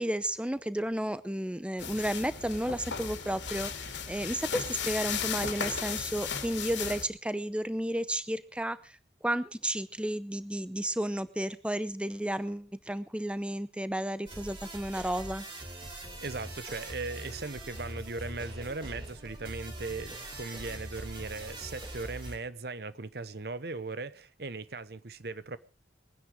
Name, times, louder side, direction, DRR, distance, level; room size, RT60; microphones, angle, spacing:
voice 1, 0.0-8.9 9.2-15.5, right 1 dB, 5° right, 14 dB, 0.7 m, -32 dB
sound 1, 1.8-7.0, left 6 dB, 80° left, 2.4 m, -35 dB
sound 2, 14.3-22.4, right 1 dB, 30° right, 3.8 m, -42 dB
voice 2, 16.2-25.6, right 3 dB, 60° right, 15 dB, 0.9 m, -38 dB
22.0 x 10.0 x 4.9 m, 0.37 s
head